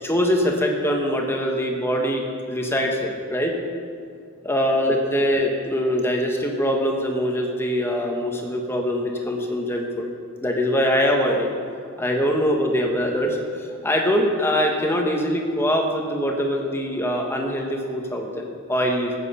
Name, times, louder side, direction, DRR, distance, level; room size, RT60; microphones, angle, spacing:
voice 1, 0.0-3.6 4.4-10.0 10.4-11.5 12.0-19.1, equal, 10° left, 1 dB, 1.4 m, -23 dB
14.5 x 9.1 x 5.7 m, 2.4 s
head